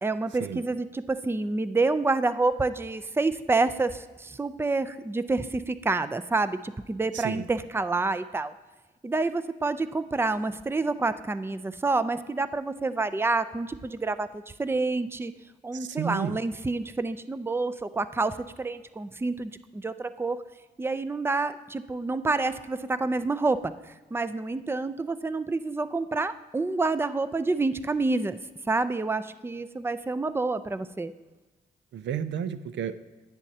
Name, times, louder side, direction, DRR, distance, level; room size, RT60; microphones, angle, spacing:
voice 1, 0.0-8.5 9.0-15.3 15.6-20.4 20.8-23.7 24.1-28.4 28.7-31.1, right 3 dB, 15° right, 13 dB, 0.4 m, -28 dB
voice 2, 7.1-7.5 15.7-16.4 31.9-32.9, right 8 dB, 80° right, 12 dB, 0.4 m, -32 dB
10.5 x 9.8 x 2.8 m, 1.1 s
cardioid pair, 60°, 18 cm